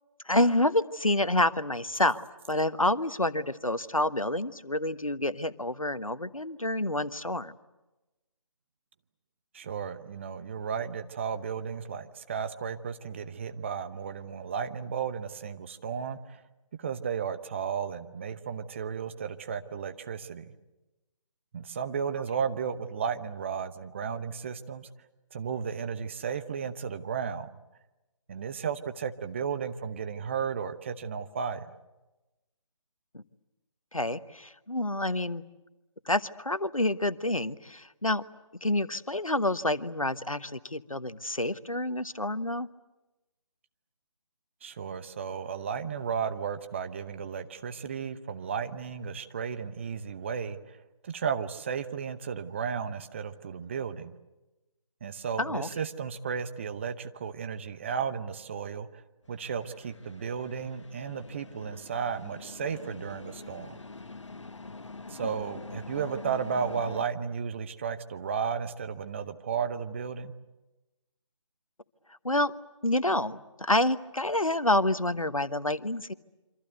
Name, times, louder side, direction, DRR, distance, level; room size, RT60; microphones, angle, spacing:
voice 1, 0.2-7.5 33.1-33.2 33.9-35.4 36.1-38.2 38.6-42.7 55.4-55.7 72.2-72.5 72.8-76.1, left 1 dB, 90° left, 14 dB, 1.2 m, -28 dB
voice 2, 9.5-16.4 16.8-20.5 21.5-24.9 25.3-27.5 28.3-31.7 44.6-50.8 51.0-54.1 55.0-58.9 59.3-63.8 65.1-70.3, right 6 dB, 20° right, 9 dB, 0.8 m, -34 dB
sound 1, 59.2-67.1, left 3 dB, 60° left, 1.3 m, -45 dB
27.0 x 25.5 x 8.1 m, 1.1 s
figure-of-eight pair, 150°, 17 cm